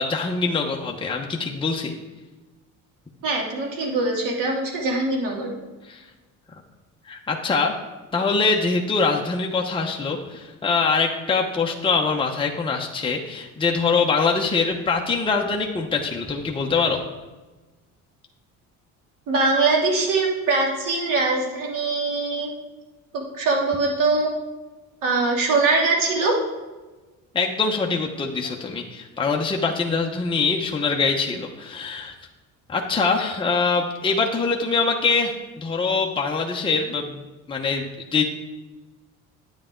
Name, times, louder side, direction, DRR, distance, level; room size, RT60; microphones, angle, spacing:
voice 1, 0.0-1.9 5.9-6.0 7.1-7.7 8.1-17.0 27.3-32.1 32.7-37.2 37.5-38.2, left 4 dB, 15° left, 0 dB, 0.9 m, -23 dB
voice 2, 3.2-5.5 19.3-22.5 23.1-24.3 25.0-26.3, right 3 dB, 75° right, -1 dB, 2.9 m, -22 dB
10.5 x 9.2 x 3.8 m, 1.2 s
cardioid pair, 120°, 33 cm